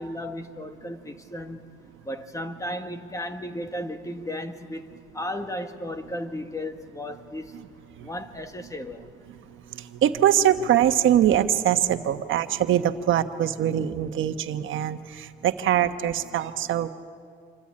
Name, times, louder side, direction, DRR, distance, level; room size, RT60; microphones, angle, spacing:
voice 1, 0.0-1.6 2.1-4.9 5.1-7.5 8.0-9.1, left 1 dB, 15° left, 6 dB, 1.8 m, -34 dB
voice 2, 9.7-16.9, right 11 dB, 80° right, 8 dB, 1.3 m, -23 dB
27.5 x 24.0 x 8.7 m, 2.3 s
cardioid pair, 90°, 20 cm